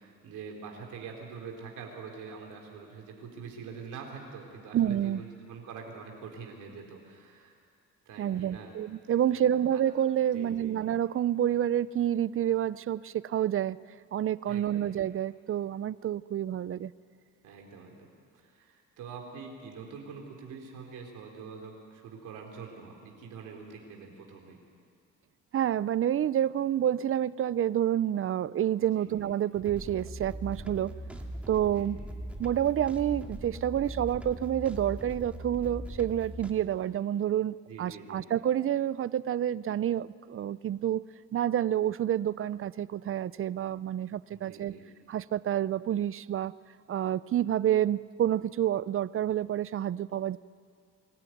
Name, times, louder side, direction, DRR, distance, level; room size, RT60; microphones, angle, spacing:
voice 1, 0.0-7.5 8.1-8.7 9.1-9.4 9.7-9.8 10.2-10.7 14.5-14.9 17.4-24.6 28.8-29.1 31.7-31.9 37.7-38.2 44.3-44.8, right 5 dB, 85° right, 0 dB, 3.8 m, -45 dB
voice 2, 4.7-5.2 8.2-13.8 14.1-16.9 25.5-30.9 31.5-32.0 32.4-41.0 41.3-44.7 45.1-46.5 46.9-50.4, right 10 dB, 45° right, 19 dB, 0.5 m, -28 dB
sound 1, 29.5-36.5, right 1 dB, 5° right, 2.2 m, -40 dB
24.5 x 14.5 x 9.4 m, 2.2 s
cardioid pair, 90°, 30 cm